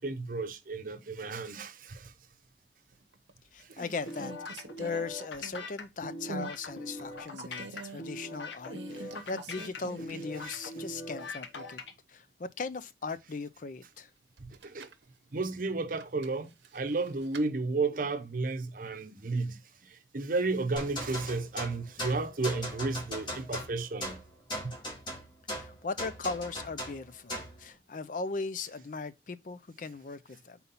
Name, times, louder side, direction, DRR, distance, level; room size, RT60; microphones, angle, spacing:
voice 1, 0.0-2.1 3.6-3.8 9.0-9.1 10.4-10.5 14.4-14.9 15.3-24.2 24.6-24.7, right 3 dB, 50° right, 0.7 m, -33 dB
sound 1, 2.9-3.3 3.7-5.8 6.3-6.6 7.0-8.0 8.7-10.5 10.8-10.9 14.4-15.0 15.9-17.5, right 3 dB, 85° right, 0.8 m, -45 dB
voice 2, 3.5-11.8 12.1-14.1 25.5-30.6, left 4 dB, 45° left, 0.5 m, -38 dB
sound 2, 4.1-11.9, left 2 dB, 90° left, 1.0 m, -41 dB
sound 3, 20.8-27.6, equal, 25° left, 1.4 m, -39 dB
4.2 x 4.1 x 5.5 m
head